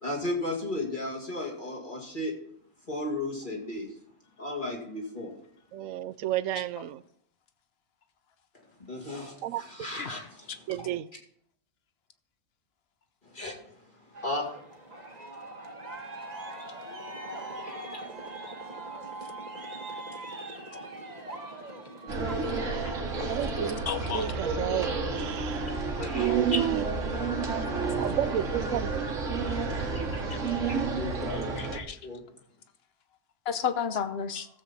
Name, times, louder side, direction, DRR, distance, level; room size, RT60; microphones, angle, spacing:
voice 1, 0.0-2.3 2.9-3.9 4.4-5.3 8.9-10.8 13.3-13.6 14.2-14.5 17.7-18.0 25.6-26.6 27.9-28.1 29.9-30.2 30.6-31.7 32.0-32.2, left 2 dB, 40° left, 2.5 m, -35 dB
voice 2, 5.7-7.0 9.4-9.6 10.7-11.1 22.7-22.9 23.2-23.8 24.1-25.6 26.2-26.8 28.0-28.9, right 12 dB, 85° right, 1.0 m, -31 dB
Aircraft, 14.1-25.8, right 2 dB, 35° right, 1.3 m, -42 dB
sound 1, 22.1-31.8, right 4 dB, 70° right, 1.7 m, -30 dB
voice 3, 23.9-24.3 26.0-26.4 31.6-32.0 33.5-34.5, left 7 dB, 55° left, 1.0 m, -32 dB
14.0 x 7.6 x 4.1 m
omnidirectional pair, 1.3 m